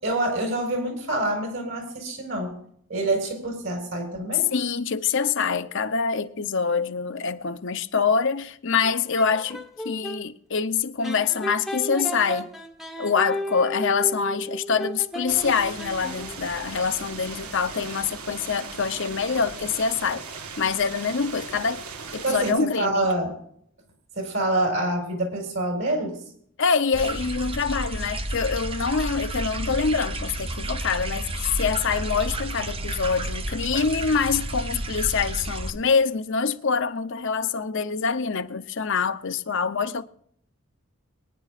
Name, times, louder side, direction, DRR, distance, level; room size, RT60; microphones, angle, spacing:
voice 1, 0.0-2.5 2.9-4.5 22.2-23.3 24.1-26.2, right 2 dB, 55° right, 4.7 m, -26 dB
voice 2, 4.3-12.5 13.0-20.2 20.6-21.8 22.1-23.1 26.6-40.0, left 5 dB, 55° left, 0.6 m, -25 dB
sound 1, 8.8-10.2 11.0-16.5, equal, ahead, 1.0 m, -34 dB
sound 2, 15.3-22.5, right 5 dB, 80° right, 1.4 m, -38 dB
sound 3, 26.9-35.7, right 1 dB, 25° right, 0.8 m, -31 dB
23.5 x 10.0 x 2.4 m
head